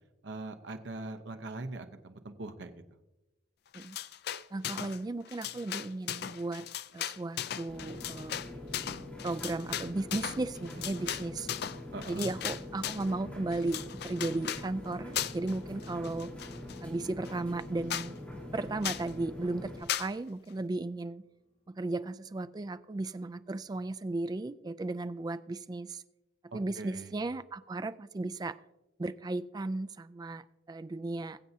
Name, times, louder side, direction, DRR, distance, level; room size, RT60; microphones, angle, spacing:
voice 1, 0.2-2.7 11.9-12.3 26.5-27.1, right 2 dB, 70° right, 7 dB, 0.8 m, -41 dB
sound 1, 3.7-5.0 5.3-13.1 13.5-14.7 15.1-15.5 15.8-16.8 17.2-17.3 17.6-17.7 17.9-18.1 18.8-19.1 19.9-20.1, left 10 dB, 55° left, 0.4 m, -37 dB
voice 2, 4.5-6.6 6.9-8.4 9.2-11.5 12.1-16.3 16.8-18.2 18.5-21.2 21.7-26.0 26.5-28.6 29.0-31.4, right 2 dB, 20° right, 13 dB, 0.3 m, -35 dB
sound 2, 7.7-19.8, left 1 dB, 10° left, 3.7 m, -44 dB
sound 3, 12.9-22.3 22.6-22.7, left 1 dB, 40° left, 4.0 m, -59 dB
21.5 x 7.9 x 2.7 m, 1.0 s
head